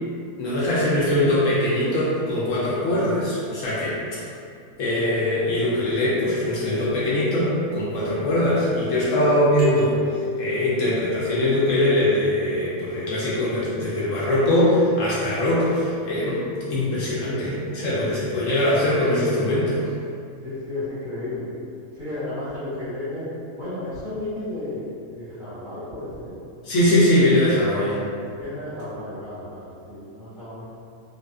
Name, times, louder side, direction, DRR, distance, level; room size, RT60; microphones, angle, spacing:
voice 1, 0.4-4.2 4.8-10.0 10.4-16.4 16.7-19.8 26.6-28.0, left 1 dB, 70° left, -8 dB, 0.9 m, -22 dB
sound 1, 9.6-11.5, left 3 dB, 45° left, 0.6 m, -30 dB
voice 2, 20.4-21.5 21.9-23.3 23.5-26.3 28.1-30.6, left 2 dB, 25° right, -16 dB, 0.9 m, -33 dB
2.5 x 2.3 x 2.2 m, 2.4 s
omnidirectional pair, 1.5 m